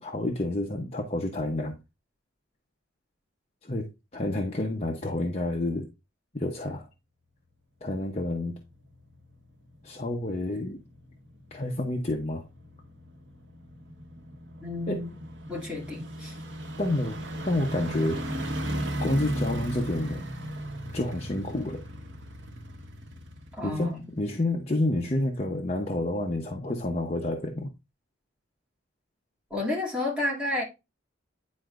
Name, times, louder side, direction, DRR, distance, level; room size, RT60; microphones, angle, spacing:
voice 1, 0.0-1.8 3.6-5.9 6.3-6.9 7.8-8.6 9.8-10.8 11.5-12.4 14.9-15.1 16.8-17.2 17.4-18.3 19.0-20.2 20.9-21.8 23.6-27.7, left 1 dB, 35° left, 0.9 m, -29 dB
sound 1, 8.1-24.6 25.0-25.1, equal, 65° right, 1.4 m, -37 dB
voice 2, 14.6-15.2 15.5-16.4 23.6-24.0 29.5-30.6, left 2 dB, 5° right, 2.5 m, -31 dB
9.9 x 4.4 x 2.5 m
head